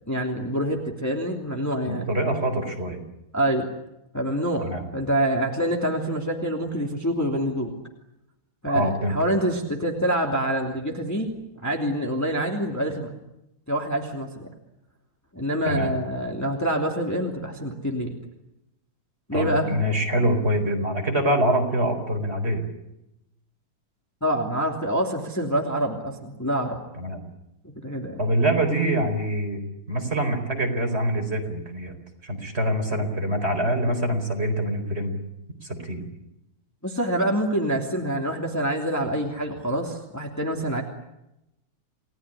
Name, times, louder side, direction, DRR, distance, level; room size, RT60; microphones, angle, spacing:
voice 1, 0.1-2.1 3.3-3.7 4.1-7.7 8.6-13.1 13.7-14.5 15.3-18.1 19.3-19.7 24.2-26.8 27.8-28.2 36.8-40.8, right 1 dB, 10° left, 0 dB, 2.9 m, -26 dB
voice 2, 1.9-3.0 4.6-4.9 8.7-9.2 15.6-15.9 19.3-22.6 26.9-27.2 28.2-29.6 29.9-32.0 32.2-35.2 35.7-36.1, right 1 dB, 30° right, 4 dB, 4.7 m, -25 dB
29.5 x 19.0 x 10.0 m, 0.89 s
omnidirectional pair, 2.3 m